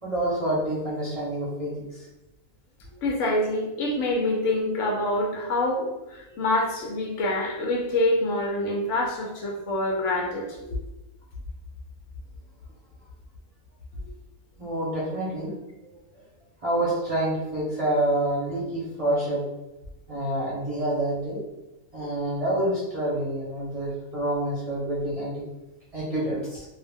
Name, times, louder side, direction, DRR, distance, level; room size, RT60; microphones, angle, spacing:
voice 1, 0.0-2.1 14.6-15.5 15.8-15.9 16.6-19.4 20.1-21.4 21.9-25.4 25.9-26.7, right 1 dB, 35° right, -7 dB, 0.7 m, -27 dB
voice 2, 3.0-10.6, left 1 dB, 70° left, -1 dB, 0.8 m, -26 dB
2.4 x 2.1 x 3.3 m, 1.0 s
omnidirectional pair, 1.5 m